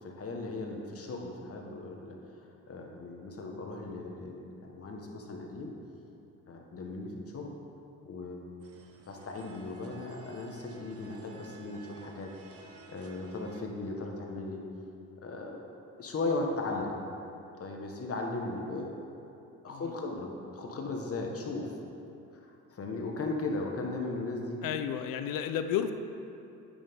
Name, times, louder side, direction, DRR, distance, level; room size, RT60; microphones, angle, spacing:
voice 1, 0.0-2.2 2.7-5.7 6.5-7.5 8.1-8.5 9.0-14.6 15.2-15.6 16.0-16.9 17.6-19.0 19.6-21.7 22.7-24.6, left 2 dB, 45° left, 1 dB, 1.4 m, -37 dB
sound 1, 8.6-13.6, right 4 dB, 45° right, 1.0 m, -54 dB
voice 2, 24.6-25.9, left 9 dB, 85° left, 9 dB, 0.6 m, -32 dB
8.9 x 8.8 x 3.7 m, 2.7 s
cardioid pair, 85°, 32 cm